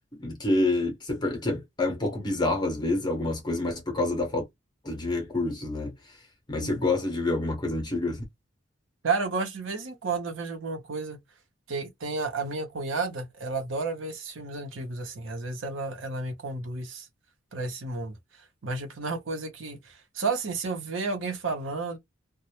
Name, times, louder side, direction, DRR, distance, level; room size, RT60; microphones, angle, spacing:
voice 1, 0.2-4.4 4.8-5.9 6.5-8.2, left 2 dB, 20° left, 0.8 m, -27 dB
voice 2, 9.0-11.2 11.7-17.1 17.5-18.2 18.6-22.0, right 4 dB, 80° right, 0.7 m, -32 dB
2.2 x 2.0 x 2.8 m
head